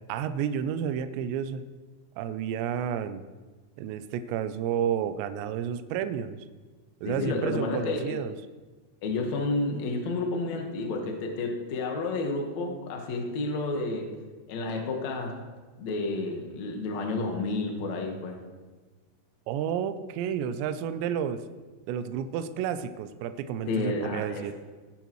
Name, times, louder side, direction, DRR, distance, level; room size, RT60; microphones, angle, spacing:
voice 1, 0.0-1.6 2.2-3.2 3.8-6.4 7.0-8.4 19.5-21.4 21.9-24.5, right 8 dB, 80° right, 10 dB, 2.6 m, -31 dB
voice 2, 7.0-8.2 9.0-14.1 14.5-15.4 15.8-18.4 23.7-24.5, left 3 dB, 75° left, 1 dB, 1.6 m, -30 dB
19.0 x 11.0 x 3.1 m, 1.3 s
omnidirectional pair, 5.7 m